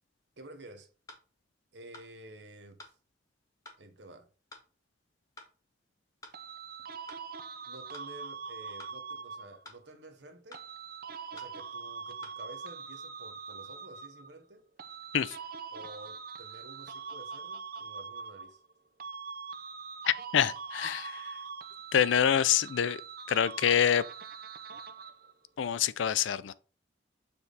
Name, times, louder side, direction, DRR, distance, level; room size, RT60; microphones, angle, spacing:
voice 1, 0.4-0.9 1.7-2.9 3.8-4.3 7.7-10.6 11.3-14.7 15.7-18.6, right 1 dB, 70° right, 1.0 m, -51 dB
sound 1, 1.1-1.3 1.9-2.1 2.8-3.0 3.7-3.8 4.5-4.7 5.4-5.5 6.2-6.4 7.1-7.2 7.9-8.1 8.8-9.0 9.7-9.8 10.5-10.7 11.4-11.5 12.2-12.4, left 2 dB, 20° left, 1.1 m, -50 dB
sound 2, 6.3-9.7 10.5-14.3 14.8-18.7 19.0-25.3, right 5 dB, 50° right, 0.5 m, -43 dB
voice 2, 20.1-21.4 21.9-23.0 23.3-24.0 25.6-26.5, left 9 dB, 90° left, 0.4 m, -26 dB
7.1 x 3.5 x 4.0 m
head